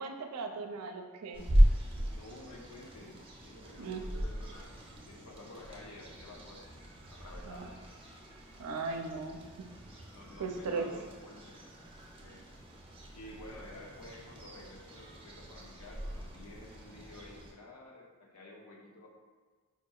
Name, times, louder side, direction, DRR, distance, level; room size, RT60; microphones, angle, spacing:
voice 1, 0.0-1.5 3.8-4.0 7.5-7.7 8.6-9.4 10.4-10.9, right 4 dB, 90° right, 4 dB, 0.4 m, -37 dB
sound 1, 1.3-17.5, equal, 25° right, 0.5 m, -36 dB
voice 2, 1.9-4.7 5.1-6.8 7.1-7.8 10.1-11.6 12.1-12.4 13.1-19.1, left 1 dB, 85° left, -1 dB, 0.6 m, -51 dB
4.6 x 2.7 x 2.3 m, 1.5 s
head